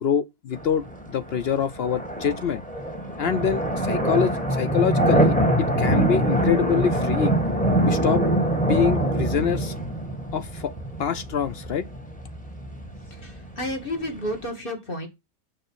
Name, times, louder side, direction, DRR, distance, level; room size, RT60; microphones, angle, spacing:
voice 1, 0.0-2.6 3.2-7.4 7.9-8.3 8.7-9.7 10.3-10.7 11.0-11.8, left 7 dB, 70° left, 0.6 m, -25 dB
sound 1, 0.5-14.4, right 1 dB, 5° left, 1.4 m, -24 dB
voice 2, 13.1-15.1, left 1 dB, 35° left, 2.2 m, -31 dB
6.5 x 4.6 x 6.2 m
omnidirectional pair, 1.6 m